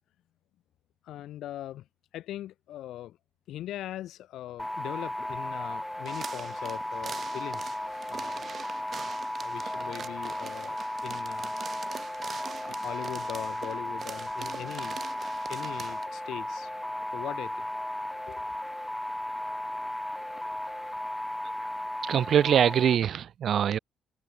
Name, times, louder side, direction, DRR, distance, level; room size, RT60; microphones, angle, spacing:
voice 1, 1.0-1.9 2.1-3.2 3.5-7.7 8.1-8.4 9.4-11.5 12.6-15.0 15.5-16.7 17.1-17.7 18.3-18.5, left 13 dB, 80° left, 5.1 m, -40 dB
sound 1, 4.6-22.9, left 1 dB, 5° left, 1.3 m, -35 dB
sound 2, 6.1-16.1, right 6 dB, 45° right, 1.9 m, -43 dB
voice 2, 22.1-23.8, right 9 dB, 65° right, 1.0 m, -23 dB
cardioid pair, 90°, 0 cm